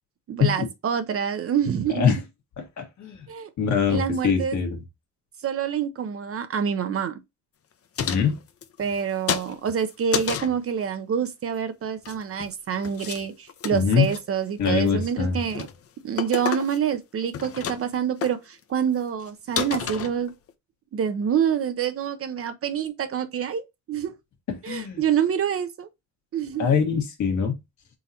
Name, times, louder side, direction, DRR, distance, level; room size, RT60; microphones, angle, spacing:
voice 1, 0.3-2.1 3.3-3.5 3.9-4.6 5.4-7.2 8.8-15.7 16.0-20.3 20.9-24.1 24.6-25.9 26.3-26.8, right 8 dB, 50° right, 0.6 m, -27 dB
voice 2, 1.9-2.2 2.6-3.2 3.6-4.8 8.0-8.3 13.7-14.1 14.6-15.4 24.6-25.0 26.6-27.5, left 6 dB, 70° left, 1.6 m, -23 dB
sound 1, 7.9-9.0 9.3-10.6 11.8-12.5 12.8-13.2 13.5-14.2 14.7-15.0 15.4-15.7 16.2-17.0 17.2-18.0 18.2-18.3 18.9-19.0 19.2-19.3 19.6-20.5, left 8 dB, 50° left, 0.7 m, -31 dB
3.9 x 3.8 x 2.8 m
cardioid pair, 90°, 30 cm